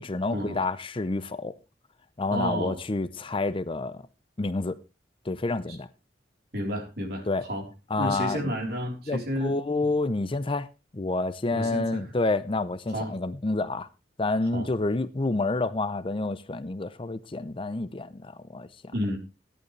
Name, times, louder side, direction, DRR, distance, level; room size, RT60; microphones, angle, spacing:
voice 1, 0.0-1.5 2.2-4.0 4.4-4.7 5.3-5.9 7.3-7.5 7.9-8.5 9.1-10.7 10.9-13.9 14.2-18.7, left 2 dB, 30° left, 0.6 m, -28 dB
voice 2, 2.3-2.8 5.7-5.8 6.5-7.6 8.0-9.6 11.5-12.1 12.9-13.1 14.5-14.7 18.9-19.2, equal, 60° right, 3.7 m, -31 dB
15.0 x 11.0 x 3.2 m
head